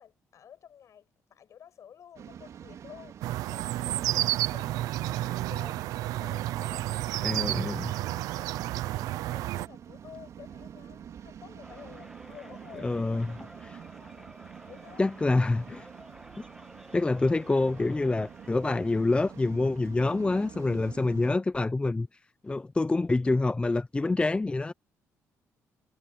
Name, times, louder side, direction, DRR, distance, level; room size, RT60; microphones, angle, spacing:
voice 1, 0.0-8.7 8.9-15.1 20.3-20.7, left 9 dB, 60° left, 7.4 m, -52 dB
Waves surf, 2.2-21.3, right 9 dB, 65° right, 4.4 m, -47 dB
sound 1, 3.2-9.7, right 15 dB, 90° right, 0.6 m, -31 dB
voice 2, 7.2-7.9 12.8-13.3 15.0-15.9 16.9-22.1 22.4-24.7, left 2 dB, 20° left, 0.7 m, -26 dB
sound 2, 11.6-19.6, right 1 dB, 5° right, 1.6 m, -51 dB
cardioid pair, 80°, 6 cm